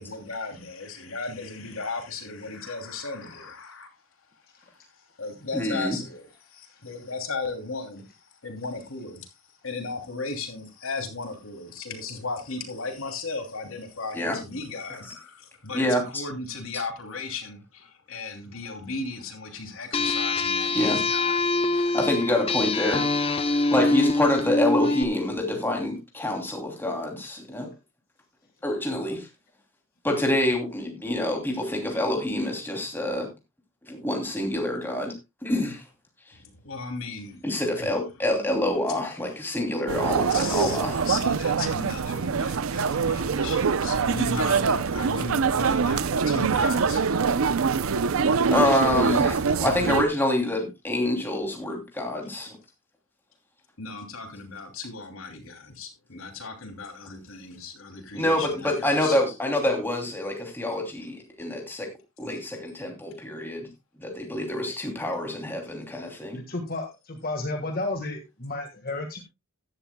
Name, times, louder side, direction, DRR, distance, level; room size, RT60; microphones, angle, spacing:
voice 1, 0.0-3.9 4.7-21.8 36.3-37.5 37.8-37.9 38.8-39.4 40.3-40.8 41.0-47.5 53.8-59.2, left 3 dB, 75° left, 2.9 m, -36 dB
voice 2, 5.5-6.0 14.1-14.4 15.7-16.2 20.7-21.0 21.7-23.1 23.3-27.7 28.6-29.3 30.0-33.3 33.9-35.1 35.4-35.8 37.4-41.0 48.5-52.6 58.1-61.9 62.2-63.7 64.0-66.4, left 1 dB, 10° left, 2.8 m, -27 dB
sound 1, 19.9-25.0, left 2 dB, 25° left, 0.8 m, -24 dB
sound 2, 39.9-50.0, right 5 dB, 75° right, 0.6 m, -24 dB
voice 3, 66.3-69.2, left 2 dB, 45° left, 1.6 m, -32 dB
15.5 x 11.5 x 2.2 m
head